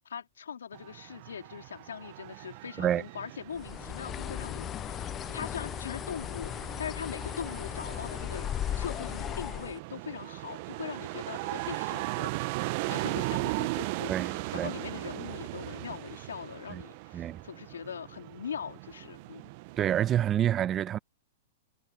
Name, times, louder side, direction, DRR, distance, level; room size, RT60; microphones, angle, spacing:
voice 1, 0.0-19.5, left 7 dB, 80° left, 4.2 m, -41 dB
sound 1, 0.7-20.3, right 24 dB, 50° right, 1.1 m, -38 dB
Bird, 3.5-9.8, left 11 dB, 30° left, 0.9 m, -36 dB
voice 2, 14.1-14.7 16.7-16.8 17.1-17.4 19.8-21.0, right 10 dB, 25° right, 1.1 m, -28 dB
hypercardioid pair, 115°, 0 cm